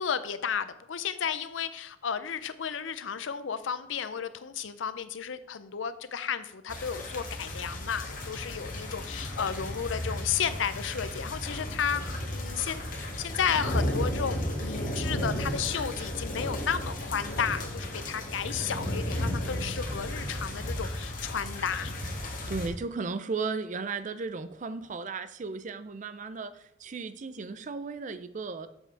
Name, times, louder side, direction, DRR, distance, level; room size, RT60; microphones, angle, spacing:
voice 1, 0.0-21.9, left 7 dB, 85° left, 13 dB, 0.5 m, -33 dB
sound 1, 6.7-22.7, left 1 dB, 45° left, 1.4 m, -34 dB
voice 2, 22.2-28.7, right 4 dB, 40° right, 12 dB, 0.4 m, -35 dB
7.1 x 5.6 x 4.6 m, 0.76 s
head